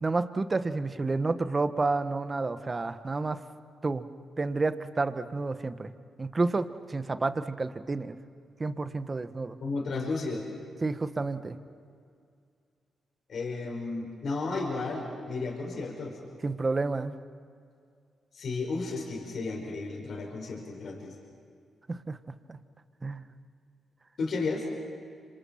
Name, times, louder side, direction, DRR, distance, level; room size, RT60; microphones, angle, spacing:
voice 1, 0.0-3.4 3.8-4.1 4.4-5.9 6.2-8.1 8.6-9.6 10.8-11.6 16.4-17.1 21.9-22.2 22.5-22.6 23.0-23.2, right 3 dB, 35° right, 11 dB, 1.4 m, -30 dB
voice 2, 9.6-10.5 13.3-16.2 18.3-21.2 24.2-24.7, left 3 dB, 65° left, -1 dB, 5.0 m, -33 dB
27.5 x 26.0 x 5.9 m, 2.3 s
supercardioid pair, 45°, 0 cm